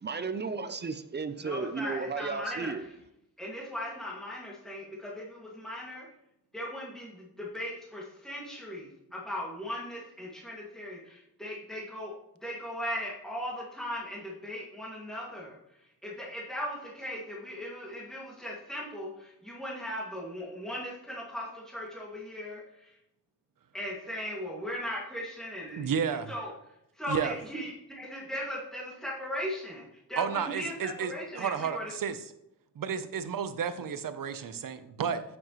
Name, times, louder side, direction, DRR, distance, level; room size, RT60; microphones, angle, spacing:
voice 1, 0.0-2.8, right 4 dB, 30° right, 11 dB, 0.7 m, -34 dB
voice 2, 1.4-3.0 3.4-6.1 6.5-12.1 12.4-23.0 23.7-26.5 26.9-31.9, equal, ahead, -5 dB, 2.2 m, -38 dB
voice 3, 25.8-26.3 27.1-27.4 30.2-32.2 32.8-35.2, right 7 dB, 65° right, 11 dB, 0.9 m, -32 dB
9.0 x 8.5 x 3.1 m, 0.83 s
cardioid pair, 100°, 36 cm